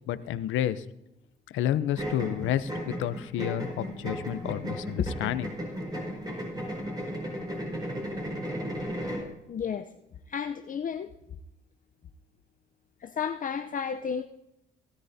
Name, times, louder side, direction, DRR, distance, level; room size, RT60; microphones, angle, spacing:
voice 1, 0.1-0.8 1.5-5.5, left 11 dB, 85° left, 13 dB, 0.6 m, -30 dB
sound 1, 2.0-9.3, equal, 20° right, 4.8 m, -35 dB
voice 2, 9.5-9.9 10.3-11.1 13.0-14.2, left 7 dB, 40° left, 6 dB, 0.6 m, -32 dB
17.5 x 13.0 x 2.7 m, 0.92 s
cardioid pair, 90°, 20 cm